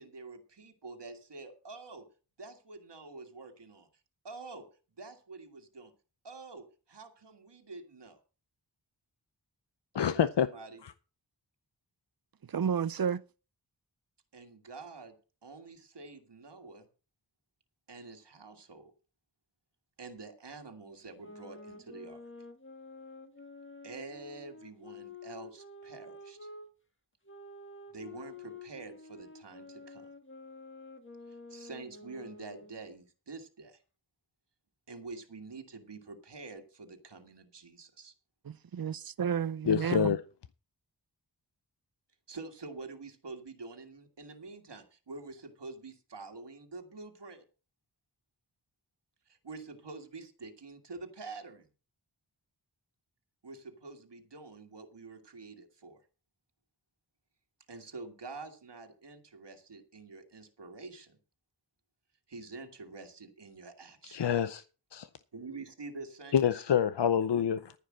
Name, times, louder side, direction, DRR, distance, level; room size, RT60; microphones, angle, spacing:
voice 1, 0.0-2.1 2.4-3.9 4.2-4.7 5.0-5.9 6.2-8.2 10.1-10.8 14.3-15.2 15.4-16.9 17.9-18.9 20.0-22.2 23.8-26.5 27.9-30.1 31.5-33.8 34.9-38.1 42.3-47.4 49.3-51.7 53.4-56.0 57.7-61.2 62.3-64.2 65.3-66.4, right 3 dB, 75° right, 1.9 m, -47 dB
voice 2, 9.9-10.5 10.8-10.9 39.7-40.2 64.1-64.6 64.9-65.1 66.3-67.7, left 8 dB, 75° left, 0.7 m, -27 dB
voice 3, 12.5-13.2 38.4-40.2, right 7 dB, 55° right, 0.7 m, -31 dB
sound 1, 21.0-26.7 27.2-32.8, left 3 dB, 30° left, 1.8 m, -49 dB
14.0 x 5.4 x 7.4 m
wide cardioid pair, 75°, 42 cm